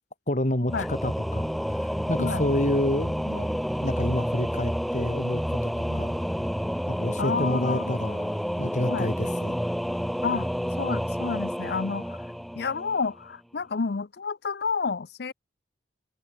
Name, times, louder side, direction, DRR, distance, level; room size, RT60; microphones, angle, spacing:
voice 1, 0.3-3.5 3.8-6.1 6.9-9.6, left 1 dB, 40° left, 2.5 m, -29 dB
Singing / Musical instrument, 0.7-13.2, equal, ahead, 1.1 m, -29 dB
voice 2, 7.2-7.9 8.9-9.1 10.2-10.5 10.8-12.2 12.5-15.3, left 4 dB, 60° left, 0.6 m, -30 dB
head